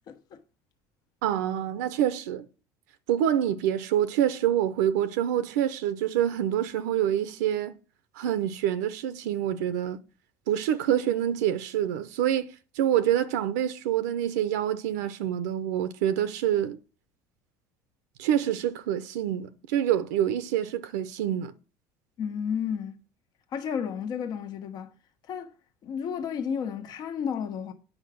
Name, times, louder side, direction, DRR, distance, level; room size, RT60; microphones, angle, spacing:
voice 1, 1.2-2.5 3.1-7.7 8.2-10.0 10.5-12.5 12.8-16.8 18.2-21.5, right 10 dB, 85° right, 0.8 m, -26 dB
voice 2, 22.2-23.0 23.5-24.9 25.3-25.5 25.8-27.7, left 7 dB, 50° left, 1.2 m, -32 dB
8.9 x 5.1 x 6.1 m
supercardioid pair, 105°, 9 cm